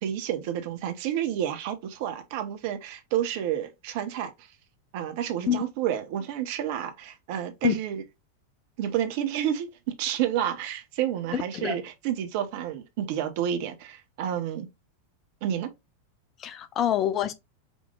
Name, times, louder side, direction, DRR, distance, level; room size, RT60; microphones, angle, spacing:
voice 1, 0.0-4.5 4.9-8.0 8.8-9.7 10.0-14.7 15.4-15.7, right 10 dB, 50° right, 1.0 m, -30 dB
voice 2, 11.3-11.7 16.4-17.3, left 10 dB, 30° left, 0.6 m, -26 dB
5.3 x 3.3 x 2.4 m
figure-of-eight pair, 90°, 0 cm